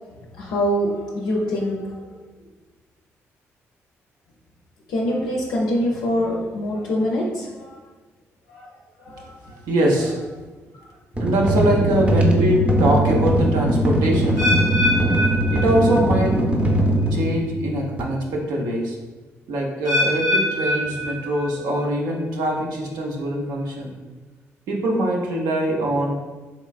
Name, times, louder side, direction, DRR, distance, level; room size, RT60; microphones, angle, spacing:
voice 1, 0.4-2.1 4.9-7.8 8.5-8.7 9.0-9.3 10.7-10.9, equal, 70° left, -3 dB, 0.4 m, -24 dB
voice 2, 9.5-10.2 11.2-14.5 15.5-16.4 17.1-19.0 19.5-23.9 24.7-26.1, right 1 dB, 70° right, -1 dB, 0.6 m, -23 dB
sound 1, 11.1-18.0, right 1 dB, 20° right, 0.6 m, -21 dB
sound 2, 14.4-16.4 16.6-17.1 17.7-17.8 19.8-21.8 22.1-22.6 23.2-23.3, left 1 dB, 90° right, 1.4 m, -24 dB
3.1 x 3.0 x 2.3 m, 1.2 s
hypercardioid pair, 40°, 7 cm